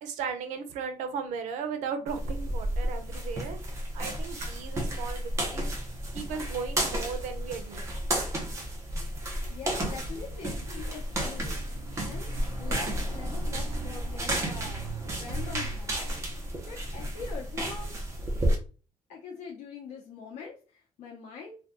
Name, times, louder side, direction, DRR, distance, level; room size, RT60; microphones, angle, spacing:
voice 1, 0.0-3.6 3.9-5.9 6.1-7.9, right 6 dB, 90° right, 8 dB, 0.6 m, -36 dB
sound 1, 2.1-18.6, right 1 dB, 25° right, 0.7 m, -32 dB
voice 2, 9.5-12.3 12.6-16.0 16.7-17.9 19.1-21.6, left 5 dB, 65° left, -2 dB, 0.7 m, -43 dB
2.7 x 2.3 x 3.5 m, 0.35 s
cardioid pair, 175°, 12 cm